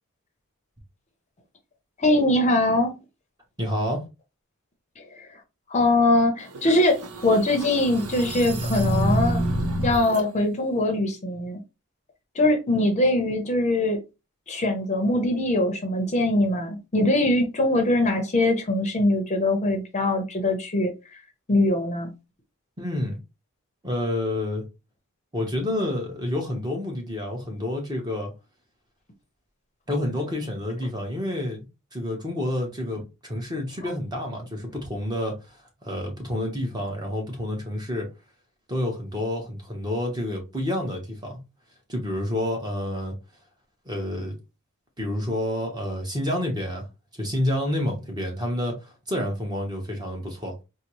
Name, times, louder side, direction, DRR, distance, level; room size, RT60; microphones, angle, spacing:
voice 1, 2.0-3.0 5.0-5.3 5.7-9.4 9.8-11.6 12.4-14.0 14.5-20.9 21.5-22.1, left 1 dB, 30° left, 0.6 m, -22 dB
voice 2, 3.6-4.0 22.8-23.2 23.8-24.6 25.3-28.3 29.9-31.7 31.9-35.4 35.8-38.1 38.7-41.4 41.9-43.1 43.9-44.4 45.0-46.9 47.1-50.5, left 1 dB, 20° right, 0.9 m, -29 dB
sound 1, 6.5-10.2, right 1 dB, 90° right, 0.7 m, -27 dB
4.0 x 2.0 x 2.9 m
head